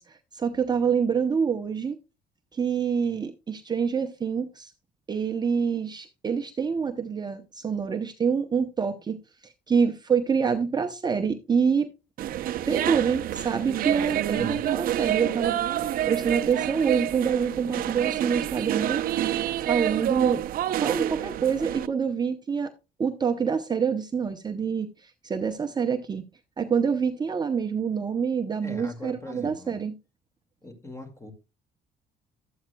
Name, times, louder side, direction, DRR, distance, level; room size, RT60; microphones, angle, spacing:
voice 1, 0.0-2.0 2.5-4.7 5.1-11.9 12.7-19.0 19.3-20.4 20.8-22.7 23.0-26.2 26.6-30.0, right 6 dB, 25° right, 0.7 m, -26 dB
sound 1, 12.2-21.9, right 12 dB, 60° right, 0.6 m, -28 dB
voice 2, 14.3-14.6 28.6-29.7 30.6-31.3, left 2 dB, 15° left, 2.1 m, -41 dB
12.5 x 8.5 x 2.2 m
cardioid pair, 110°, 17 cm